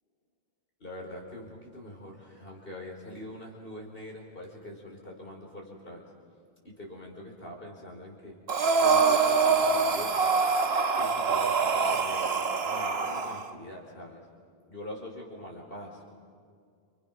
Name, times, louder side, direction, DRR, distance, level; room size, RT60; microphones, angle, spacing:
voice 1, 0.8-6.0 6.6-8.4 8.8-10.3 10.9-12.3 12.6-14.2 14.7-16.1, left 1 dB, 65° left, -1 dB, 4.9 m, -43 dB
Breathing, 8.5-13.4, right 5 dB, 80° right, 1.4 m, -25 dB
30.0 x 26.0 x 6.1 m, 2.2 s
omnidirectional pair, 1.0 m